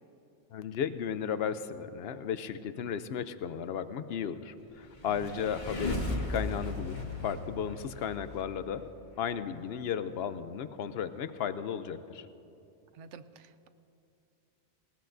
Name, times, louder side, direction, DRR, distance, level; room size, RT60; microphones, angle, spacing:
voice 1, 0.5-8.9 9.2-12.3, left 7 dB, 65° left, 12 dB, 0.8 m, -35 dB
sound 1, 4.8-8.4, left 2 dB, 40° left, 1.8 m, -36 dB
voice 2, 5.1-5.4 12.9-13.7, right 6 dB, 85° right, 12 dB, 0.9 m, -49 dB
19.0 x 19.0 x 2.6 m, 2.7 s
omnidirectional pair, 1.2 m